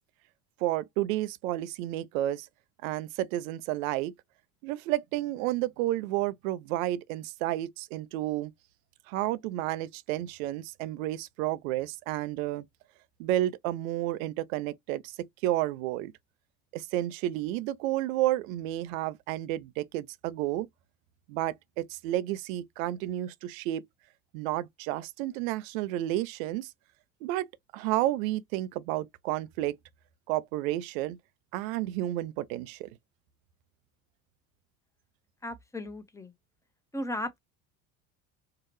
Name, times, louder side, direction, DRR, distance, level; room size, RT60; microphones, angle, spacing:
voice 1, 0.6-2.5 2.8-4.1 4.6-8.5 9.1-12.7 13.2-15.2 15.4-16.1 16.7-20.7 21.3-23.8 24.3-26.7 27.2-27.5 27.7-29.8 30.3-31.2 31.5-32.9, right 15 dB, 70° right, 0.6 m, -31 dB
voice 2, 35.4-36.3 36.9-37.4, left 1 dB, 5° left, 1.0 m, -36 dB
4.6 x 2.4 x 3.1 m
hypercardioid pair, 70°, 42 cm